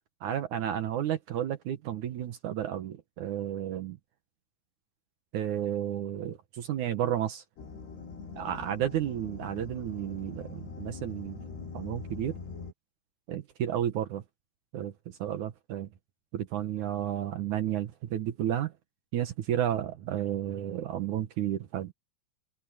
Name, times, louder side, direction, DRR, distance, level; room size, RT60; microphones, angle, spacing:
voice 1, 0.2-4.0 5.3-7.4 8.4-11.4 11.7-12.4 13.3-14.2 14.7-15.9 16.3-18.7 19.1-21.9, right 11 dB, 65° right, 2.1 m, -32 dB
sound 1, 7.6-12.7, left 5 dB, 90° left, 8.9 m, -43 dB
omnidirectional pair, 4.7 m